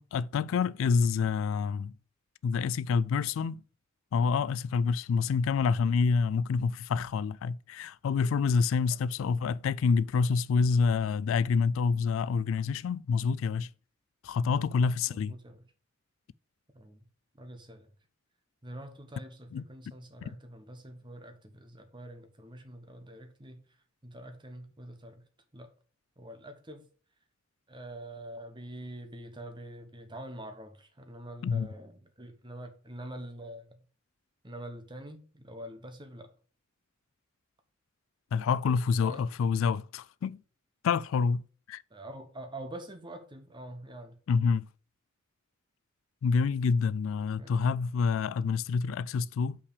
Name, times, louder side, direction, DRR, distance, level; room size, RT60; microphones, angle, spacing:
voice 1, 0.0-1.9 2.4-3.6 4.1-13.7 14.2-15.3 19.5-19.6 31.4-31.7 38.3-40.4 40.8-41.4 41.7-41.8 44.3-44.7 46.2-49.6, left 5 dB, 70° left, 0.3 m, -27 dB
voice 2, 15.0-15.6 16.7-17.1 17.3-17.9 18.6-23.6 24.0-25.2 25.5-25.7 26.2-26.9 27.7-33.9 34.4-36.3 39.0-39.3 41.9-44.2 47.3-47.6, right 1 dB, 25° right, 1.1 m, -45 dB
5.7 x 4.9 x 6.6 m
head